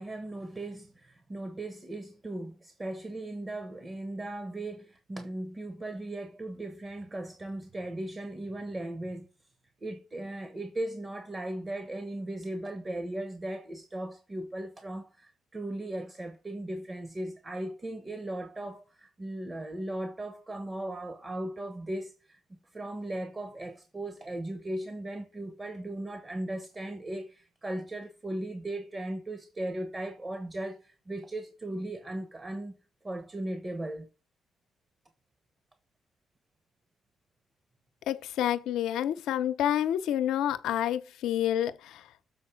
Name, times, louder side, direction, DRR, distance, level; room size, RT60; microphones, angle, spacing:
voice 1, 0.0-9.3 9.8-32.8 33.0-34.1, right 1 dB, 25° right, 1.1 m, -37 dB
voice 2, 38.1-42.1, left 11 dB, 85° left, 0.7 m, -28 dB
7.0 x 4.2 x 6.0 m
cardioid pair, 90°, 0 cm